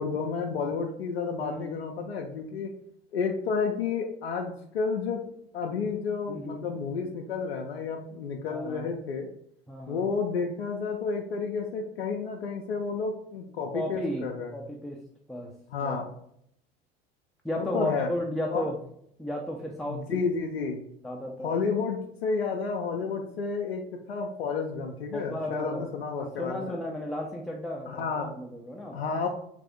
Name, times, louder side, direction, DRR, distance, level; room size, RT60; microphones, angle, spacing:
voice 1, 0.0-2.7 3.1-5.2 5.5-9.3 9.9-14.5 15.7-16.1 17.6-18.1 18.5-18.6 19.9-20.8 21.4-23.8 24.1-26.8 27.9-28.3 28.9-29.3, left 5 dB, 80° left, 0 dB, 0.5 m, -31 dB
voice 2, 1.4-1.8 6.3-6.6 8.5-8.9 9.7-10.0 13.7-15.0 15.3-15.5 15.8-16.0 17.4-18.8 19.2-20.2 21.0-21.5 25.1-25.9 26.1-29.0, left 1 dB, ahead, -1 dB, 0.5 m, -34 dB
3.4 x 3.3 x 3.6 m, 0.72 s
figure-of-eight pair, 70°, 30 cm